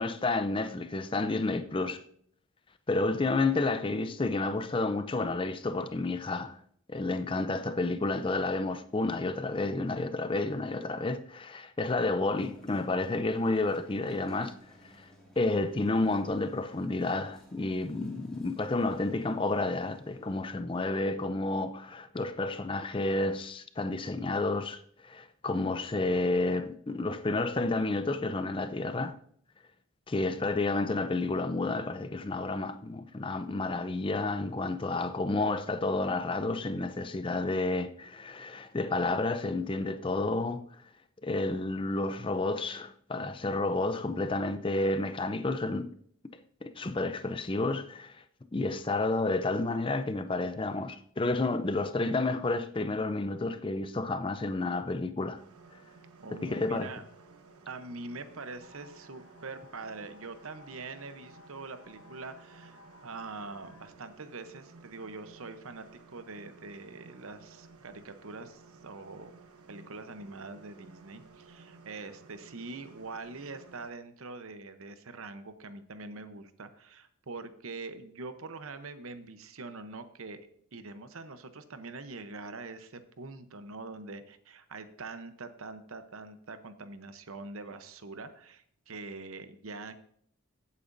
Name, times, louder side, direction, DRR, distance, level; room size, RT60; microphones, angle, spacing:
voice 1, 0.0-2.0 2.9-6.6 6.9-14.5 15.0-15.1 15.4-29.2 30.1-40.7 41.2-45.9 46.6-48.2 48.5-55.4 56.3-56.9, left 2 dB, 20° left, 0.5 m, -30 dB
sound 1, 12.2-20.5, equal, 5° left, 2.4 m, -57 dB
sound 2, 55.3-73.9, right 4 dB, 85° right, 1.2 m, -55 dB
voice 2, 56.2-57.0 57.7-69.3 69.7-90.0, right 3 dB, 65° right, 0.8 m, -44 dB
sound 3, 58.6-63.8, left 3 dB, 60° left, 1.8 m, -58 dB
15.5 x 8.5 x 2.6 m
head